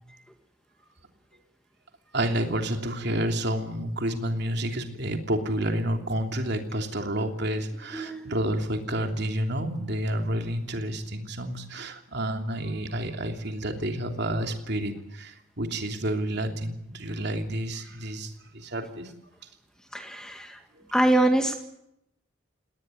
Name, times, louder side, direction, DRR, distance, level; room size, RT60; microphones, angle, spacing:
voice 1, 2.1-19.1 20.7-20.8, right 1 dB, 55° right, 5 dB, 3.1 m, -30 dB
voice 2, 7.9-8.3 19.9-20.6 20.9-21.6, right 1 dB, 5° left, 5 dB, 1.7 m, -24 dB
19.5 x 19.0 x 9.6 m, 0.79 s
head